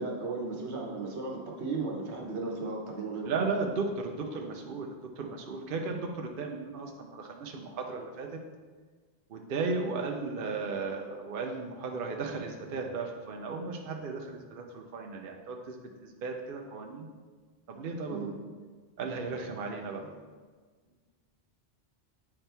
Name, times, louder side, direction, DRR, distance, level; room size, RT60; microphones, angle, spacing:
voice 1, 0.0-3.3 18.1-18.4, right 3 dB, 75° right, 0 dB, 1.3 m, -35 dB
voice 2, 3.3-8.3 9.3-17.1 17.7-18.2 19.0-20.1, right 4 dB, 60° right, 2 dB, 0.7 m, -35 dB
8.5 x 4.4 x 3.3 m, 1.5 s
omnidirectional pair, 1.2 m